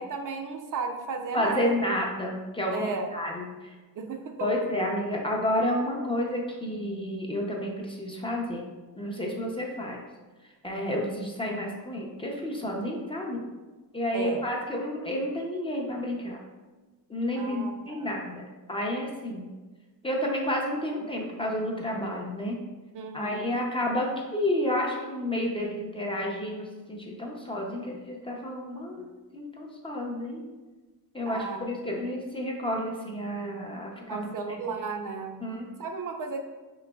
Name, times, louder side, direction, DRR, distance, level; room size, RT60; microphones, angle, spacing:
voice 1, 0.0-1.8 2.7-3.1 4.0-4.5 14.1-14.4 17.4-18.1 22.9-23.6 31.3-31.7 34.1-35.4 35.8-36.4, right 4 dB, 60° right, 4 dB, 0.5 m, -34 dB
voice 2, 1.3-3.7 4.4-8.7 9.0-10.0 10.6-13.4 13.9-16.4 17.1-19.5 20.0-22.6 23.1-29.1 29.3-30.5 31.1-34.3 35.4-35.7, left 1 dB, 15° left, -1 dB, 0.5 m, -30 dB
5.6 x 3.9 x 2.3 m, 1.2 s
wide cardioid pair, 170°, 36 cm